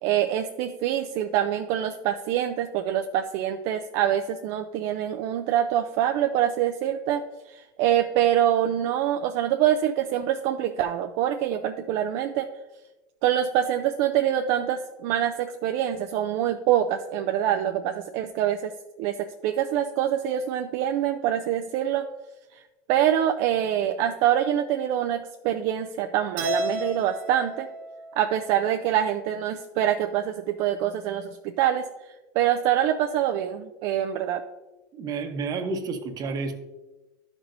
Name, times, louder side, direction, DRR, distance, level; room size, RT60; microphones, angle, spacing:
voice 1, 0.0-7.2 7.5-12.5 13.2-18.7 19.0-19.2 19.4-22.1 22.9-27.7 28.2-31.9 32.3-34.4, right 10 dB, 60° right, 5 dB, 0.4 m, -25 dB
Keyboard (musical), 26.4-28.7, equal, 85° right, 1.5 m, -32 dB
voice 2, 34.9-36.5, right 4 dB, 40° right, 6 dB, 1.0 m, -30 dB
11.0 x 6.1 x 2.6 m, 1.1 s
supercardioid pair, 115°, 10 cm